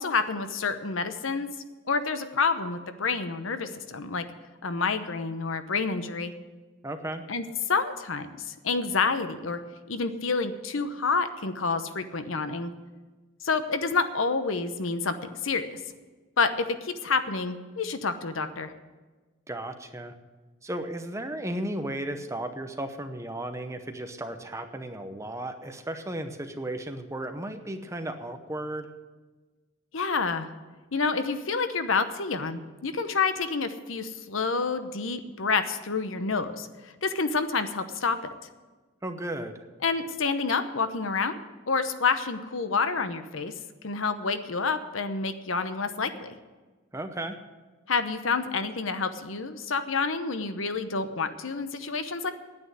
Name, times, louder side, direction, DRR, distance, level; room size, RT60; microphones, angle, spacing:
voice 1, 0.0-1.5 1.9-4.2 4.6-6.3 7.3-8.3 8.6-9.6 9.9-12.7 13.4-15.7 16.4-18.7 29.9-30.5 30.9-36.7 37.0-38.2 39.8-41.4 41.7-43.5 43.8-46.4 47.9-52.3, left 4 dB, 75° left, 10 dB, 0.9 m, -28 dB
voice 2, 6.8-7.2 19.5-20.1 20.6-28.9 39.0-39.5 46.9-47.4, right 1 dB, 15° right, 7 dB, 0.8 m, -34 dB
9.7 x 8.8 x 9.4 m, 1.3 s
head